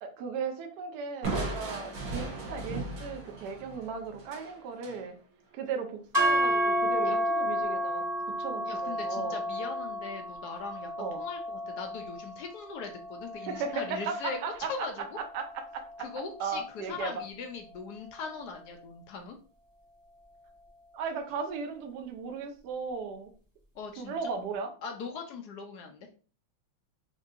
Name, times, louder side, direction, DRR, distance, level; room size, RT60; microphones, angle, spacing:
voice 1, 0.0-5.1 5.5-8.0 8.4-9.4 11.0-11.2 13.5-14.9 15.2-16.1 16.4-17.1 20.9-23.3 24.0-24.7, right 5 dB, 65° right, 5 dB, 1.1 m, -36 dB
Crushing, 1.2-5.0, right 2 dB, 80° right, 2.0 m, -36 dB
sound 1, 6.1-14.4, equal, 15° right, 0.9 m, -31 dB
voice 2, 8.7-15.2 16.0-19.4 23.8-24.1 24.8-26.1, left 5 dB, 75° left, 4 dB, 0.9 m, -40 dB
5.3 x 2.6 x 2.5 m, 0.39 s
omnidirectional pair, 2.3 m